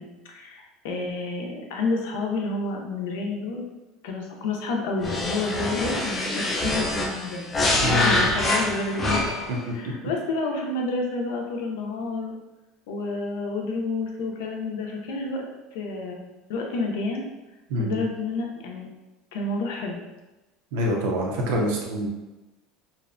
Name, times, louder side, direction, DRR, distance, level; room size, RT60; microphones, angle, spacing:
voice 1, 0.0-3.6 4.0-7.5 8.0-9.3 9.7-12.3 12.9-15.4 15.7-16.2 16.5-17.2 17.8-18.9 19.3-20.0, left 3 dB, 80° left, 1 dB, 0.4 m, -29 dB
sound 1, 5.0-9.6, left 1 dB, 15° left, 0.3 m, -25 dB
voice 2, 7.8-8.2 9.7-9.8 17.7-18.0 20.7-22.1, equal, 75° right, -1 dB, 0.5 m, -26 dB
2.5 x 2.1 x 2.5 m, 1.1 s
cardioid pair, 170°, 0 cm